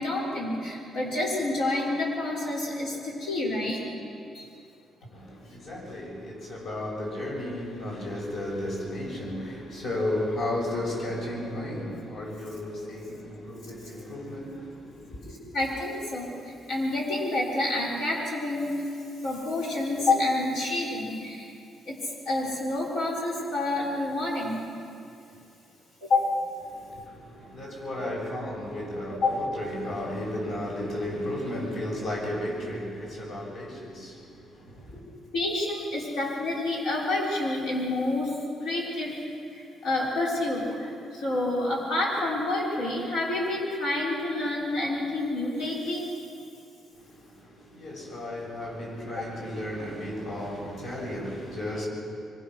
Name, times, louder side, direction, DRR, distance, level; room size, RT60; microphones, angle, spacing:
voice 1, 0.0-3.9 4.3-4.5 15.5-18.8 19.2-21.5 21.9-22.0 22.3-24.6 26.0-26.3 29.2-29.4 35.3-38.3 38.6-39.1 39.5-46.1, left 2 dB, 85° left, 6.2 m, -28 dB
voice 2, 5.1-15.4 26.7-35.0 46.9-51.9, left 1 dB, 60° left, 7.1 m, -34 dB
24.5 x 23.0 x 6.5 m
cardioid pair, 150°, 0 cm